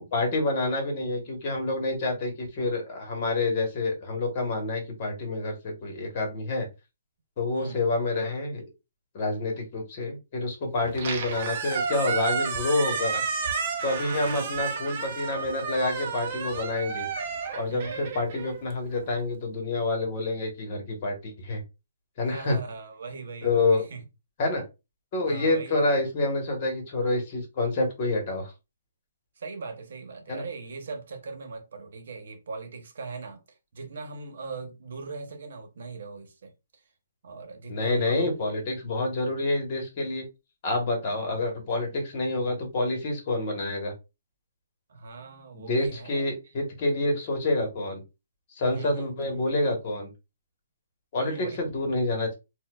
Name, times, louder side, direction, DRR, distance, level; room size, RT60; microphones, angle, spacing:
voice 1, 0.0-6.7 7.4-8.6 9.1-13.2 13.8-17.1 17.5-21.6 22.2-22.6 23.4-23.9 24.4-24.6 25.1-28.5 30.3-30.4 37.7-40.3 40.6-43.9 45.5-48.0 48.5-50.1 51.1-52.3, left 2 dB, 35° left, 1.1 m, -28 dB
Squeak, 10.8-19.1, right 5 dB, 35° right, 0.6 m, -31 dB
voice 2, 17.7-18.1 22.2-24.0 25.2-25.9 29.4-33.4 33.7-36.8 37.2-38.3 44.9-46.3 48.7-49.5 51.1-51.5, right 4 dB, 60° right, 1.0 m, -40 dB
4.2 x 2.3 x 2.3 m
hypercardioid pair, 165°, 0 cm